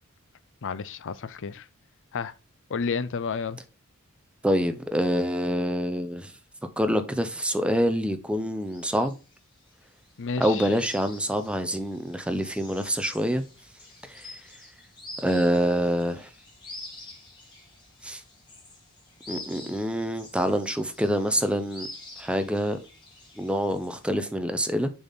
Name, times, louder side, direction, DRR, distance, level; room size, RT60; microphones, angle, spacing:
voice 1, 0.6-1.6 2.1-2.3 2.7-3.6 10.2-10.7, left 5 dB, 60° left, 0.5 m, -31 dB
voice 2, 4.4-6.3 6.8-9.1 10.4-13.4 14.1-14.2 15.2-16.3 18.0-18.2 19.3-21.9 22.2-22.8 23.4-24.9, equal, 5° right, 0.7 m, -26 dB
sound 1, 8.7-24.1, left 2 dB, 20° left, 2.1 m, -47 dB
6.8 x 4.2 x 3.6 m
head